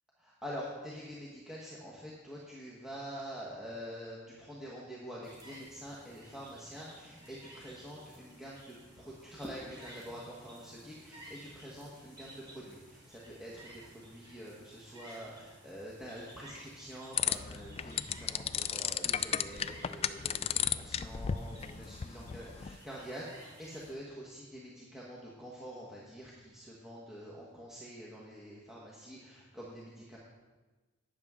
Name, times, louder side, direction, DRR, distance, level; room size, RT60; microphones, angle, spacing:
voice 1, 0.2-30.2, equal, 5° right, -6 dB, 1.4 m, -46 dB
sound 1, 5.2-23.9, right 1 dB, 20° right, 2.6 m, -55 dB
sound 2, 17.2-22.8, left 8 dB, 30° left, 0.3 m, -34 dB
12.0 x 9.2 x 3.7 m, 1.3 s
head